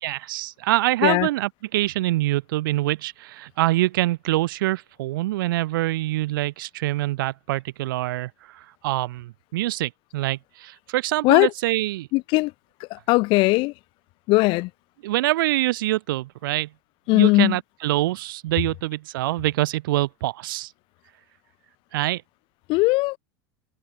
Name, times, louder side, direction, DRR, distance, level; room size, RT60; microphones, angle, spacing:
voice 1, 0.0-12.1 15.0-16.7 17.1-20.7 21.9-22.2, right 17 dB, 70° right, 1.0 m, -25 dB
voice 2, 12.1-12.5 12.9-13.7 14.3-14.7 17.1-17.6 22.7-23.2, left 23 dB, 45° left, 0.4 m, -19 dB
hypercardioid pair, 85°, 12 cm